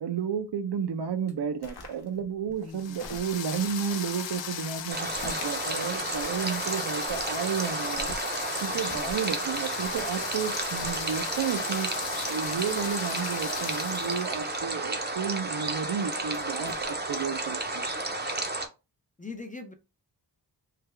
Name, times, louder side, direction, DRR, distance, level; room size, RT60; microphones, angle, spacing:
voice 1, 0.0-8.1 8.6-11.9 12.3-17.9, right 7 dB, 70° right, 0.5 m, -32 dB
sound 1, 1.3-3.7 4.5-5.6 5.9-6.8 7.0-13.2 14.3-15.1 15.9-17.4, left 2 dB, 60° left, 0.9 m, -47 dB
voice 2, 2.6-3.0 8.7-9.1 19.2-19.7, left 3 dB, 20° left, 0.5 m, -42 dB
sound 2, 2.7-14.4, left 8 dB, 85° left, 0.6 m, -37 dB
sound 3, 4.9-18.7, right 2 dB, 25° right, 0.6 m, -32 dB
3.3 x 2.3 x 3.3 m
wide cardioid pair, 90°, 43 cm